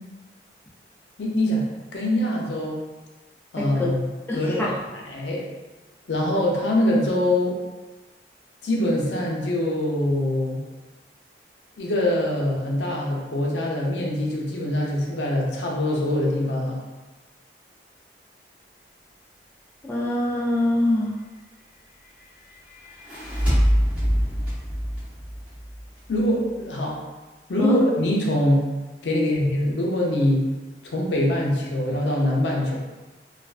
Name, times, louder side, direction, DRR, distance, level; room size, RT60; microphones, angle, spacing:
voice 1, 1.2-1.6 1.9-2.8 3.5-4.0 4.3-5.4 6.1-7.5 8.6-10.6 11.8-16.8 26.1-27.0 27.5-28.7 29.0-30.4 30.8-32.8, left 1 dB, 85° left, -2 dB, 0.5 m, -23 dB
voice 2, 4.3-4.7 19.9-21.1 27.6-27.8 29.1-29.3, left 1 dB, 10° left, -5 dB, 0.3 m, -23 dB
sound 1, 22.8-26.2, equal, 10° right, 0.7 m, -24 dB
2.3 x 2.2 x 2.4 m, 1.2 s
head